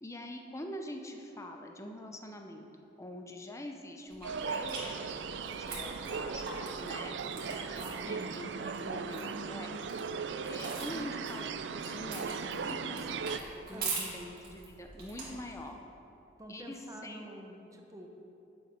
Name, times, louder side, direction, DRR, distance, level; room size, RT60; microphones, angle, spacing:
voice 1, 0.0-2.7 3.0-6.5 6.8-7.2 7.5-9.8 10.4-15.8 16.5-17.3, left 1 dB, 15° left, 3 dB, 0.7 m, -45 dB
sound 1, 4.1-15.7, right 4 dB, 55° right, 2.4 m, -44 dB
sound 2, 4.2-13.4, right 5 dB, 80° right, 0.4 m, -38 dB
voice 2, 8.0-8.4 13.7-14.1 16.4-18.1, right 1 dB, 20° right, 2 dB, 0.9 m, -47 dB
9.5 x 7.1 x 5.3 m, 2.9 s
head